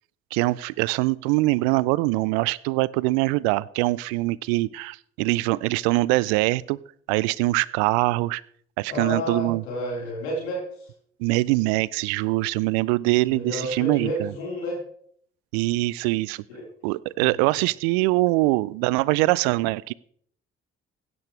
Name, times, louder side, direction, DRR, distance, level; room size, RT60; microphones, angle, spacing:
voice 1, 0.3-6.8 7.1-8.4 8.8-9.6 11.2-14.3 15.5-16.4 16.8-19.9, right 21 dB, 80° right, 22 dB, 0.5 m, -23 dB
voice 2, 8.9-10.6 13.3-14.8 16.5-16.6 17.2-17.3, equal, 90° left, -3 dB, 4.2 m, -30 dB
16.0 x 12.0 x 3.2 m, 0.62 s
hypercardioid pair, 45°, 32 cm